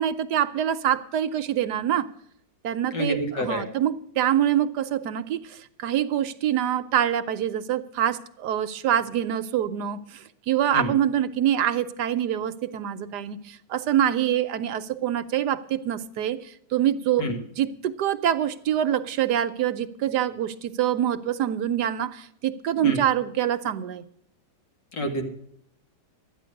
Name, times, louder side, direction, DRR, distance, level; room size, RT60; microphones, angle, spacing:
voice 1, 0.0-2.1 2.6-24.0, right 10 dB, 70° right, 12 dB, 1.2 m, -25 dB
voice 2, 2.9-3.6 10.7-10.9 17.2-17.4 22.8-23.0 24.9-25.3, equal, 75° left, 4 dB, 2.7 m, -28 dB
13.0 x 9.9 x 6.4 m, 0.72 s
omnidirectional pair, 1.9 m